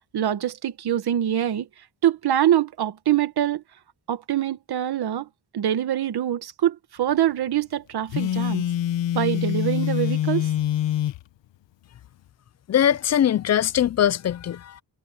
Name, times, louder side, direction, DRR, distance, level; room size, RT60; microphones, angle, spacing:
voice 1, 0.1-1.7 2.0-3.6 4.1-5.3 5.5-8.6 9.1-10.5, right 11 dB, 60° right, 1.5 m, -24 dB
Telephone, 8.1-11.2, left 11 dB, 90° left, 1.1 m, -25 dB
voice 2, 12.7-14.8, left 10 dB, 40° left, 0.4 m, -21 dB
wide cardioid pair, 175°, 43 cm